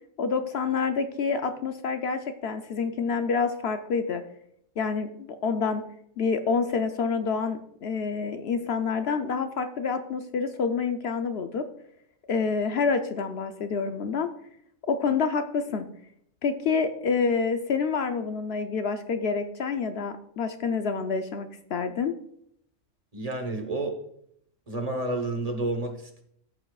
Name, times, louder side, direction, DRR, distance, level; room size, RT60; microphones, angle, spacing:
voice 1, 0.2-4.2 4.8-5.9 6.2-11.7 12.3-14.3 14.9-15.9 16.4-22.1, left 5 dB, 65° left, 8 dB, 0.8 m, -27 dB
voice 2, 23.1-24.0 24.7-26.2, right 2 dB, 30° right, 4 dB, 1.1 m, -30 dB
14.0 x 7.1 x 2.4 m, 0.71 s
omnidirectional pair, 1.3 m